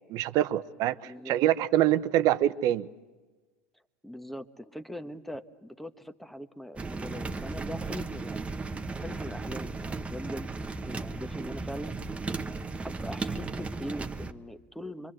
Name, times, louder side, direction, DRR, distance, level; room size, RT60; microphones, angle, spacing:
voice 1, 0.0-2.9, right 13 dB, 55° right, 1.0 m, -25 dB
voice 2, 4.0-8.5 8.9-10.5 10.9-11.9 12.8-15.1, equal, ahead, 1.3 m, -41 dB
sound 1, 6.8-14.3, right 3 dB, 15° right, 1.2 m, -35 dB
25.5 x 24.0 x 7.8 m
hypercardioid pair, 90°, 7 cm